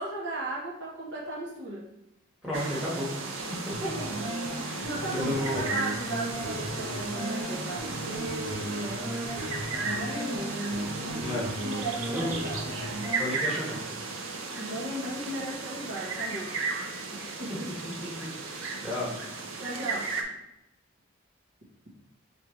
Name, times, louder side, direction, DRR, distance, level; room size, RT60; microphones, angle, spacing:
voice 1, 0.0-1.9 3.8-9.3 9.8-12.7 14.6-16.5 17.1-17.7 19.6-20.1, right 1 dB, 60° right, -5 dB, 1.1 m, -36 dB
voice 2, 2.4-3.9 4.6-5.6 11.2-11.5 12.1-12.3 13.2-13.8 17.8-19.1, left 1 dB, 5° right, -8 dB, 1.5 m, -33 dB
sound 1, 2.5-20.2, right 3 dB, 85° right, 0.6 m, -35 dB
sound 2, 3.7-13.2, right 1 dB, 35° right, 1.4 m, -36 dB
4.6 x 3.4 x 3.1 m, 0.85 s
head